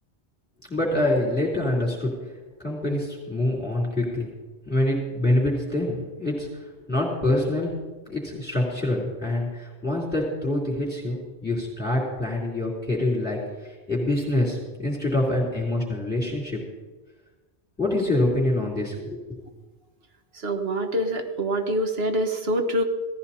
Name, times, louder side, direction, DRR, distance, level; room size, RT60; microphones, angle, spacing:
voice 1, 0.7-2.1 2.6-4.3 4.7-6.5 6.9-7.8 8.1-11.2 11.4-16.6 17.8-19.4, left 1 dB, 10° left, -6 dB, 3.7 m, -25 dB
voice 2, 20.4-22.8, right 1 dB, 65° right, 5 dB, 1.7 m, -25 dB
17.0 x 14.5 x 4.4 m, 1.2 s
omnidirectional pair, 1.1 m